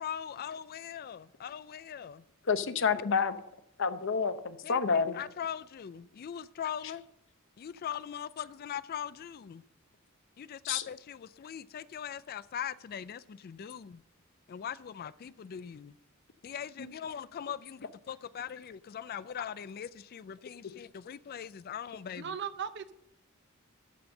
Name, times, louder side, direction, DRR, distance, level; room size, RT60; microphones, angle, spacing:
voice 1, 0.0-2.2 2.9-3.0 4.6-7.0 7.6-9.6 10.4-14.0 14.5-15.9 16.4-22.4, left 8 dB, 45° left, 0.3 m, -41 dB
voice 2, 2.5-3.4 3.8-5.2 10.6-10.8 16.8-16.9, left 5 dB, 65° left, 0.7 m, -29 dB
voice 3, 22.2-22.9, right 7 dB, 55° right, 0.6 m, -37 dB
13.0 x 4.3 x 6.5 m
head